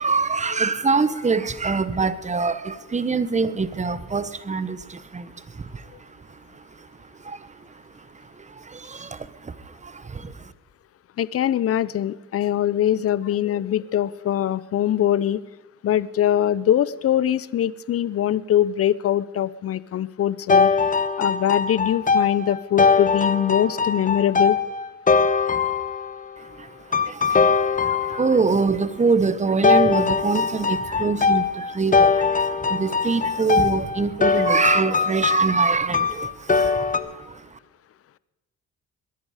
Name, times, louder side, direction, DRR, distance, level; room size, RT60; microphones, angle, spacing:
voice 1, 0.0-10.5 26.4-37.6, right 4 dB, 25° right, 1.0 m, -25 dB
voice 2, 11.2-15.4 15.8-20.7 21.2-24.6, left 11 dB, 50° left, 0.6 m, -22 dB
sound 1, 20.5-26.3 26.9-28.6 29.6-37.0, left 5 dB, 25° left, 1.1 m, -21 dB
21.5 x 11.0 x 4.9 m
cardioid pair, 90°, 30 cm